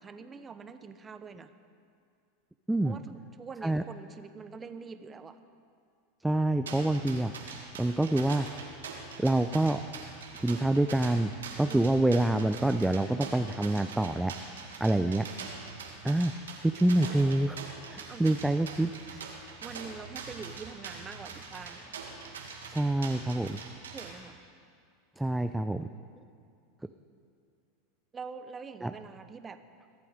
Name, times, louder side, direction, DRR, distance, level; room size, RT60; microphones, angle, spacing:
voice 1, 0.0-1.5 2.8-5.4 11.7-11.8 14.8-15.3 18.1-18.3 19.1-22.0 23.9-24.4 26.1-26.3 28.1-29.6, right 5 dB, 25° right, 10 dB, 0.9 m, -45 dB
voice 2, 6.2-7.3 7.8-8.5 9.2-9.8 10.4-11.3 11.6-14.3 14.8-15.2 16.0-16.3 16.6-17.6 17.9-18.9 22.7-23.6 25.2-25.9 28.8-28.9, right 1 dB, 5° right, 8 dB, 0.4 m, -26 dB
sound 1, 6.7-24.1, right 4 dB, 90° right, 1.9 m, -44 dB
22.5 x 8.5 x 5.1 m, 2.3 s
hypercardioid pair, 100°, 0 cm